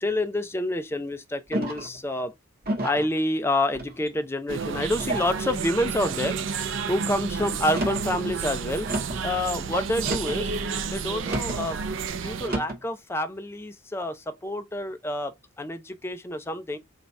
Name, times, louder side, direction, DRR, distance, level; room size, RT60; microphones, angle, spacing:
voice 1, 0.0-2.3 2.8-8.9 9.2-10.5 10.8-11.8 12.1-16.8, left 1 dB, 10° left, 0.4 m, -28 dB
sound 1, 1.5-2.0 2.6-3.1 3.7-4.3 5.0-5.4 6.1-6.5 7.6-8.1 8.9-9.3 10.0-10.4 11.2-11.6 12.4-12.8, right 1 dB, 45° right, 1.3 m, -31 dB
sound 2, 4.5-12.5, right 5 dB, 65° right, 0.5 m, -31 dB
3.2 x 2.7 x 4.5 m
head